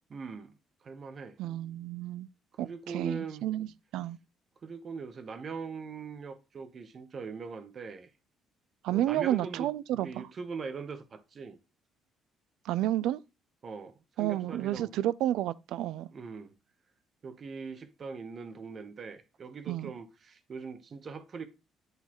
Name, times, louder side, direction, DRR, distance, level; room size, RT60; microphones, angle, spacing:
voice 1, 0.1-0.5 0.8-1.4 2.6-3.4 4.6-8.1 8.9-11.6 13.6-14.9 16.1-16.5 17.2-21.5, right 5 dB, 35° right, 0.8 m, -41 dB
voice 2, 1.4-2.3 2.6-3.7 3.9-4.2 8.8-10.3 12.7-13.2 14.2-16.1 19.7-19.9, right 13 dB, 80° right, 0.3 m, -31 dB
10.5 x 4.0 x 3.0 m
cardioid pair, 145°, 0 cm